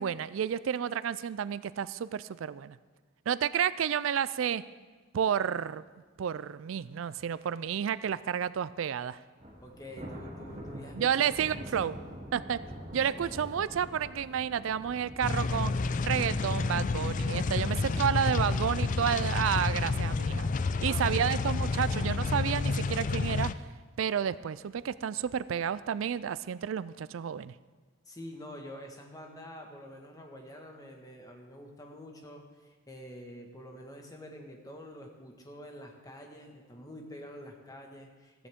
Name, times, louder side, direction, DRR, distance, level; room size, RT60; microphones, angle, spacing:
voice 1, 0.0-2.8 3.3-4.6 5.1-5.8 6.2-9.2 10.9-11.9 12.3-12.6 12.9-15.7 16.0-20.5 20.8-23.5 24.0-27.5, right 8 dB, 80° right, 17 dB, 0.4 m, -30 dB
Thunder, 9.4-22.7 23.0-23.3 23.7-23.8 24.7-25.3, equal, 35° right, 2.7 m, -47 dB
voice 2, 9.6-11.7 20.8-21.3 28.0-38.5, equal, 20° left, 2 dB, 1.6 m, -47 dB
sound 1, 15.2-23.5, left 4 dB, 40° left, 0.4 m, -30 dB
sound 2, 15.8-23.8, equal, 10° right, 0.8 m, -47 dB
15.0 x 14.0 x 3.6 m, 1.4 s
head